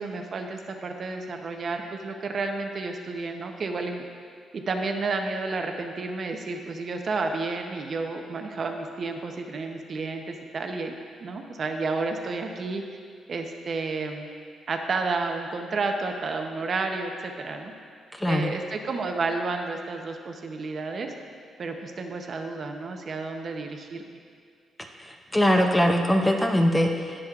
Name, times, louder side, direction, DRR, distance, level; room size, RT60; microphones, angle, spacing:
voice 1, 0.0-4.0 4.5-13.0 13.3-14.3 14.7-17.7 18.3-21.1 21.6-24.2, right 3 dB, 40° right, 4 dB, 0.7 m, -31 dB
voice 2, 18.2-18.5 25.0-27.2, equal, 10° left, 3 dB, 0.5 m, -22 dB
18.5 x 6.2 x 2.4 m, 2.1 s
cardioid pair, 145°, 0 cm